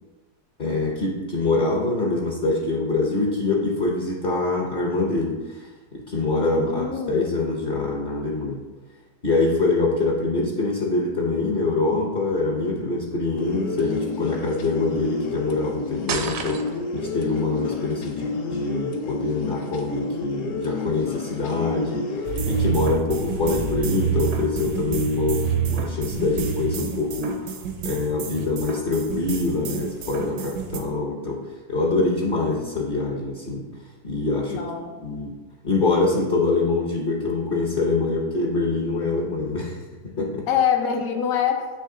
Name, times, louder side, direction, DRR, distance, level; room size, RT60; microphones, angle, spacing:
voice 1, 0.6-8.6 9.2-27.4 27.8-31.4 31.7-33.6 34.0-34.6 35.0-35.3 35.6-39.8 40.2-40.4, left 3 dB, 45° left, -3 dB, 0.7 m, -24 dB
voice 2, 6.6-7.2 23.3-23.4 34.5-34.9 40.5-41.7, left 8 dB, 65° left, 3 dB, 1.1 m, -24 dB
sound 1, 13.4-22.7, left 3 dB, 80° left, 1.3 m, -31 dB
sound 2, 16.1-17.0, right 6 dB, 70° right, 0.8 m, -29 dB
sound 3, 22.2-30.8, right 7 dB, 85° right, 1.3 m, -28 dB
8.5 x 3.1 x 3.7 m, 1.3 s
omnidirectional pair, 1.8 m